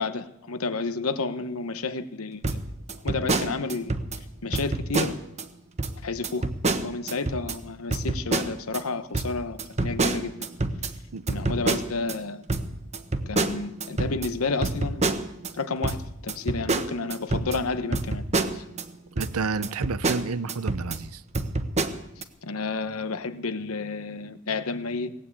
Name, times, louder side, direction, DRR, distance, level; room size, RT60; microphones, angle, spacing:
voice 1, 0.0-2.6 3.0-3.9 4.4-5.2 6.0-6.5 6.8-10.5 11.3-12.4 13.3-15.0 15.5-18.2 18.5-18.6 22.4-25.1, left 3 dB, 75° left, 1.0 m, -31 dB
sound 1, 2.4-4.2 4.5-5.4 5.8-5.9 6.2-7.6 7.9-8.8 9.1-12.2 12.5-15.5 15.8-18.9 19.2-19.3 19.6-21.0 21.3-22.2, right 3 dB, 30° right, 1.0 m, -28 dB
voice 2, 19.2-21.2, right 4 dB, 80° right, 0.6 m, -30 dB
18.0 x 9.1 x 8.3 m
head